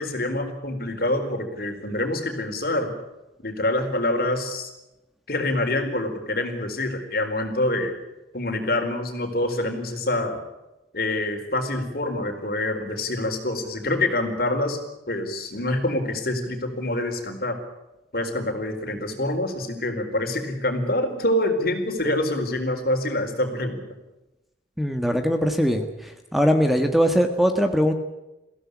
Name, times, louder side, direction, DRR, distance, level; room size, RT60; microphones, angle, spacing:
voice 1, 0.0-2.9 3.4-4.7 5.3-7.9 8.3-10.4 10.9-14.8 15.1-17.6 18.1-23.8, left 1 dB, 55° left, 5 dB, 4.4 m, -26 dB
voice 2, 24.8-27.9, equal, ahead, 6 dB, 1.5 m, -21 dB
22.5 x 16.0 x 9.9 m, 0.97 s
head